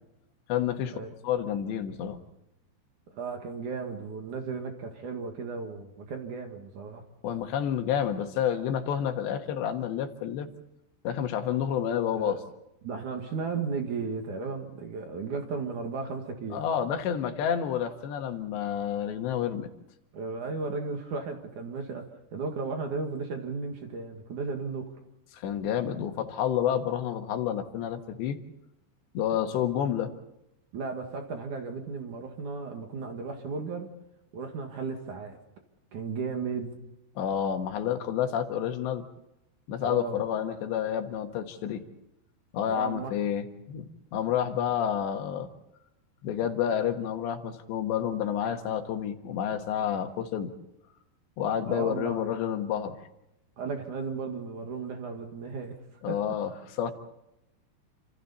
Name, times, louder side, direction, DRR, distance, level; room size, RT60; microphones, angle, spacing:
voice 1, 0.5-1.0 1.2-2.2 7.2-10.5 11.1-12.4 16.5-19.7 25.3-28.4 29.2-30.1 37.2-39.0 39.7-41.8 42.5-43.9 44.1-45.5 46.2-50.5 51.4-53.0 56.0-56.9, left 9 dB, 80° left, 6 dB, 3.7 m, -29 dB
voice 2, 3.1-7.0 12.2-12.4 12.8-16.7 20.1-24.9 30.7-33.9 34.3-35.4 35.9-36.8 39.8-40.2 42.6-43.1 51.7-52.2 53.6-55.8 56.1-56.2, right 4 dB, 50° right, 4 dB, 3.0 m, -35 dB
29.0 x 27.0 x 4.2 m, 0.85 s
omnidirectional pair, 5.1 m